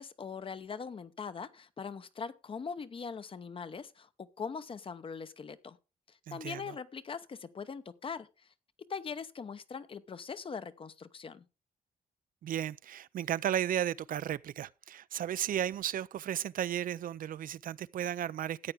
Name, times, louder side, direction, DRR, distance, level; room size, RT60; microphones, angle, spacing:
voice 1, 0.0-5.8 6.1-8.3 8.9-11.4, left 5 dB, 35° left, 0.8 m, -41 dB
voice 2, 6.3-6.7 12.4-18.7, right 10 dB, 70° right, 0.5 m, -34 dB
14.0 x 9.0 x 3.5 m
wide cardioid pair, 145°, 15 cm